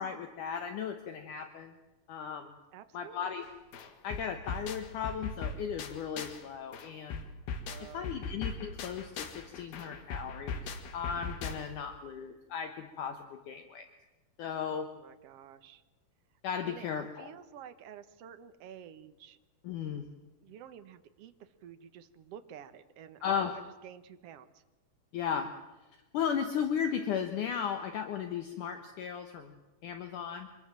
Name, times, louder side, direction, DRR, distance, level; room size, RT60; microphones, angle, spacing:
voice 1, 0.0-1.7 2.1-2.6 2.9-3.4 4.0-7.2 7.9-10.6 10.9-13.9 14.4-14.9 16.4-17.3 19.6-20.1 23.2-23.6 25.1-25.5 26.1-29.6 29.8-30.5, left 7 dB, 65° left, 7 dB, 2.5 m, -36 dB
voice 2, 2.7-3.4 7.7-8.2 14.7-15.8 16.6-16.9 17.2-19.4 20.4-24.6, right 9 dB, 60° right, 10 dB, 1.6 m, -50 dB
sound 1, 3.4-3.5 3.7-6.5 6.7-11.9, left 4 dB, 90° left, 3.8 m, -40 dB
25.5 x 21.5 x 7.5 m, 1.1 s
omnidirectional pair, 4.2 m